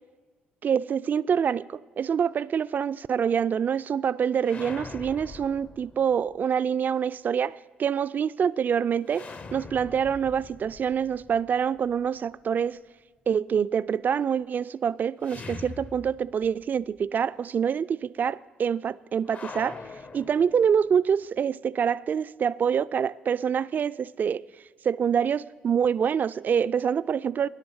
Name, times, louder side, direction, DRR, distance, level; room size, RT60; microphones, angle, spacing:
voice 1, 0.6-12.8 13.3-19.8 20.1-24.4 24.8-27.5, right 7 dB, 45° right, 0.3 m, -26 dB
sound 1, 4.4-6.4 9.1-12.1 15.2-16.6 16.9-17.0 19.3-21.0, left 4 dB, 35° left, 0.7 m, -43 dB
13.0 x 10.5 x 5.4 m
hypercardioid pair, 50°, 4 cm